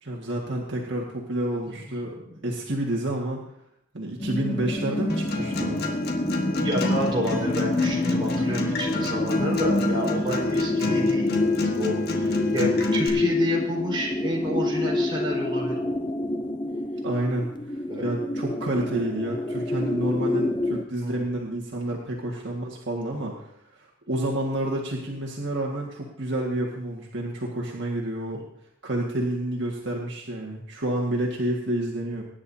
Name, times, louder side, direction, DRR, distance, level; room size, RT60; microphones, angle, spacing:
voice 1, 0.0-2.2 2.4-3.4 3.9-5.8 17.0-28.4 28.8-32.2, right 1 dB, 65° right, -2 dB, 1.9 m, -29 dB
voice 2, 1.9-2.4 6.5-16.0 17.9-18.1 21.0-21.2, equal, 25° right, -3 dB, 4.4 m, -30 dB
sound 1, 4.2-20.8, left 2 dB, 25° left, 0.6 m, -27 dB
Acoustic guitar, 5.1-13.1, left 1 dB, 55° left, 1.7 m, -30 dB
23.5 x 10.5 x 2.8 m, 0.77 s
head